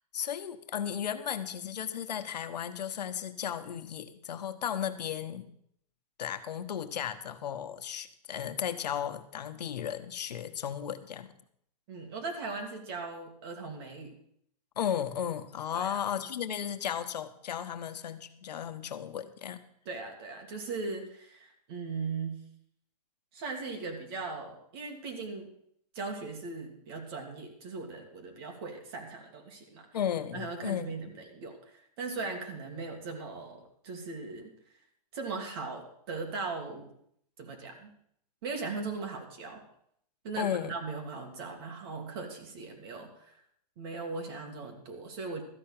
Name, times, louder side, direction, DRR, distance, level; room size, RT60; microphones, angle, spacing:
voice 1, 0.1-5.5 6.2-11.3 14.8-19.6 29.9-30.9 40.3-40.8, left 9 dB, 90° left, 9 dB, 1.2 m, -35 dB
voice 2, 11.9-14.1 15.7-16.0 19.9-22.4 23.3-25.5 25.9-29.9 30.3-34.5 35.1-36.9 37.4-37.9 38.4-39.6 40.2-43.4 43.8-45.4, right 4 dB, 35° right, 3 dB, 2.3 m, -39 dB
13.5 x 5.8 x 8.7 m, 0.69 s
hypercardioid pair, 170°, 20 cm